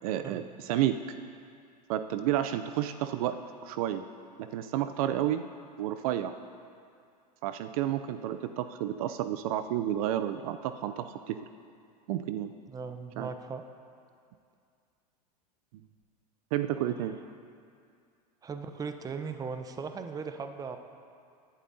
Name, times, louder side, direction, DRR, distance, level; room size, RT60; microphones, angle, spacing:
voice 1, 0.0-0.9 1.9-4.0 4.4-5.4 5.8-6.3 7.4-11.4 12.1-12.5 13.2-13.3 16.5-17.1, right 12 dB, 60° right, 10 dB, 0.6 m, -31 dB
voice 2, 12.7-13.6 16.8-17.0 18.4-20.8, right 5 dB, 15° right, 7 dB, 0.8 m, -38 dB
18.5 x 11.5 x 2.7 m, 2.3 s
hypercardioid pair, 105°, 21 cm